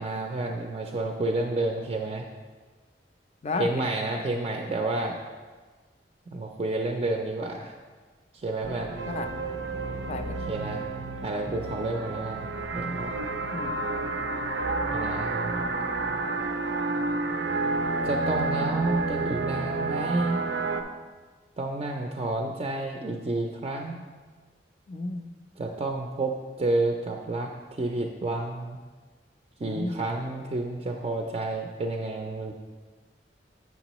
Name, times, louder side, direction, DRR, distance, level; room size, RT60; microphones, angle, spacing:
voice 1, 0.0-2.3 3.6-5.2 6.3-7.7 8.4-8.9 10.5-10.8 11.2-12.5 12.7-13.1 14.9-15.7 18.0-20.5 21.6-24.0 25.6-27.5 27.8-28.8 29.6-32.5, right 2 dB, 35° right, 2 dB, 0.4 m, -30 dB
voice 2, 3.4-3.9 9.1-9.3 10.1-10.4 13.5-13.9 24.9-25.3 29.6-30.1, left 3 dB, 35° left, 7 dB, 0.4 m, -33 dB
sound 1, 8.6-20.8, right 3 dB, 90° right, 0.6 m, -30 dB
8.1 x 5.9 x 3.0 m, 1.4 s
head